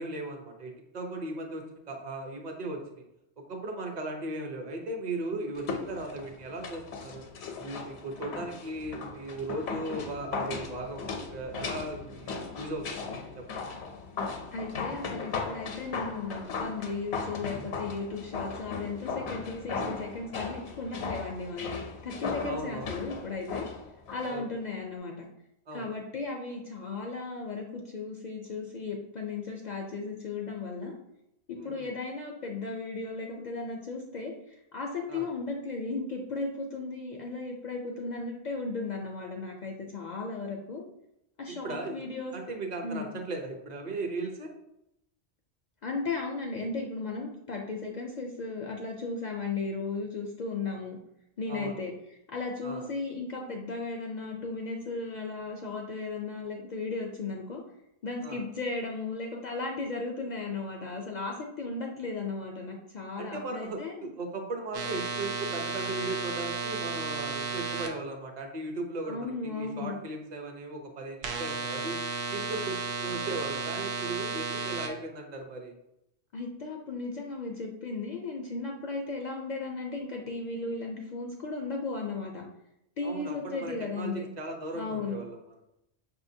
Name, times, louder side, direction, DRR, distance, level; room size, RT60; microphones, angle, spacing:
voice 1, 0.0-3.0 3.5-7.2 7.6-13.7 22.4-22.9 24.3-24.4 25.7-25.9 31.6-31.9 35.1-35.3 41.5-42.0 42.3-44.5 51.5-51.7 52.6-52.9 58.2-58.4 63.1-72.0 72.3-75.7 83.0-85.8, right 2 dB, 45° right, 2 dB, 0.7 m, -37 dB
sound 1, 5.5-24.4 24.7-24.8, left 4 dB, 75° left, 0.9 m, -37 dB
voice 2, 14.5-21.8 22.0-23.6 24.1-25.3 25.7-30.9 31.5-40.8 41.4-42.3 42.8-43.1 45.8-51.0 51.4-51.9 52.3-57.6 58.0-64.1 69.1-70.0 76.3-82.5 83.0-84.3 84.7-85.2, left 3 dB, 60° left, 0 dB, 0.5 m, -35 dB
sound 2, 64.7-67.9 71.2-74.9, right 4 dB, 75° right, 0.8 m, -33 dB
5.6 x 2.7 x 2.6 m, 0.83 s
omnidirectional pair, 1.1 m